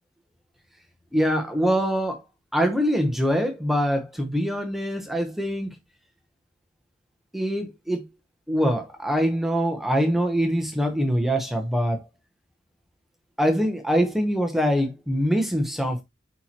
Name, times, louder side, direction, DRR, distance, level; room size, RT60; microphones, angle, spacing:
voice 1, 1.1-2.2 2.5-5.7 7.3-8.0 8.5-12.0 13.4-16.0, equal, ahead, 0.9 m, -24 dB
8.5 x 4.4 x 2.9 m
head